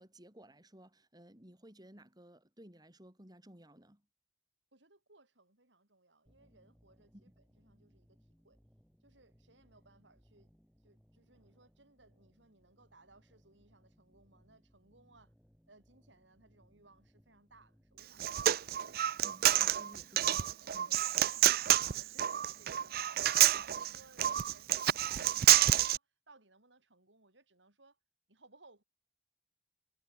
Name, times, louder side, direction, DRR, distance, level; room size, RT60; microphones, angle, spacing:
voice 1, 0.0-4.0 7.1-7.3 19.2-20.5 20.7-20.9, equal, 20° right, 5.1 m, -56 dB
voice 2, 4.7-8.6 9.0-10.5 10.8-15.3 15.7-18.9 19.6-23.1 23.4-28.0 28.3-28.8, right 2 dB, 80° right, 7.9 m, -64 dB
sound 1, 6.3-19.8, equal, ahead, 6.0 m, -68 dB
Human voice, 18.0-26.0, right 12 dB, 55° right, 0.5 m, -28 dB
head